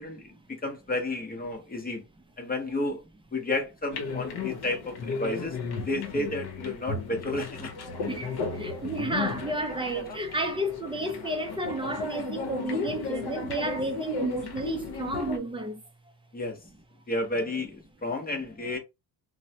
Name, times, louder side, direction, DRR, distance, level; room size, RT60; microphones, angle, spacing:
voice 1, 0.0-2.0 2.4-3.0 3.3-7.7 16.3-16.6 17.1-18.8, left 2 dB, 20° left, 0.6 m, -32 dB
sound 1, 3.9-15.4, left 4 dB, 55° left, 0.8 m, -35 dB
voice 2, 8.6-15.8, right 1 dB, 15° right, 0.3 m, -31 dB
3.0 x 2.0 x 2.7 m
cardioid pair, 130°, 46 cm